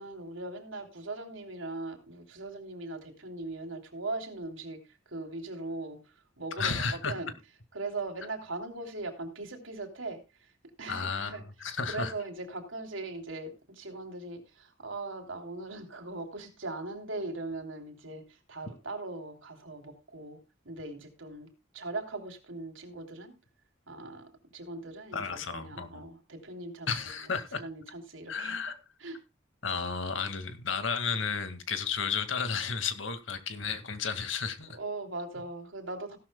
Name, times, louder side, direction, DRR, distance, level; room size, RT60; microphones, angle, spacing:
voice 1, 0.0-7.4 7.7-10.5 10.8-11.4 11.9-20.4 20.6-23.3 23.9-26.9 27.5-28.5 29.0-29.2 34.7-36.2, right 2 dB, 90° right, 3.3 m, -40 dB
voice 2, 6.6-7.1 10.9-12.1 25.1-26.0 26.9-27.6 28.3-28.8 29.6-34.8, left 5 dB, 70° left, 2.1 m, -33 dB
16.5 x 12.0 x 2.3 m
head